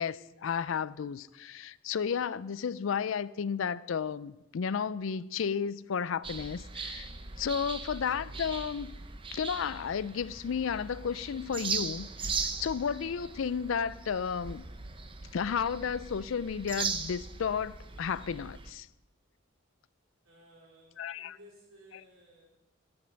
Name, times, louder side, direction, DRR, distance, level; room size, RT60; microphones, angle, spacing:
voice 1, 0.0-7.1 7.4-8.9 9.3-14.6 15.3-18.9 21.0-21.4, left 7 dB, 70° left, 0.4 m, -33 dB
sound 1, 6.2-18.7, right 5 dB, 25° right, 0.7 m, -39 dB
voice 2, 20.2-22.5, equal, 70° right, 4.0 m, -57 dB
14.5 x 5.4 x 7.5 m
head